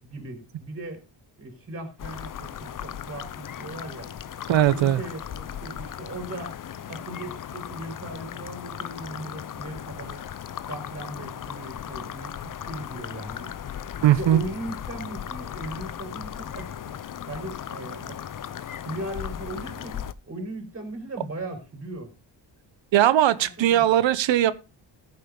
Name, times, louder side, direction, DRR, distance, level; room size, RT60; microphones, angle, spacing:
voice 1, 0.0-1.0 1.4-4.1 4.7-6.6 6.9-10.2 10.7-12.3 12.7-13.5 14.1-17.0 17.2-18.2 18.8-22.1 23.7-23.9, right 1 dB, 30° right, 4.4 m, -38 dB
sound 1, 2.0-20.1, left 9 dB, 45° left, 0.8 m, -37 dB
voice 2, 4.5-5.0 14.0-14.4 22.9-24.5, right 12 dB, 70° right, 1.0 m, -19 dB
14.5 x 7.5 x 3.9 m
cardioid pair, 115°, 47 cm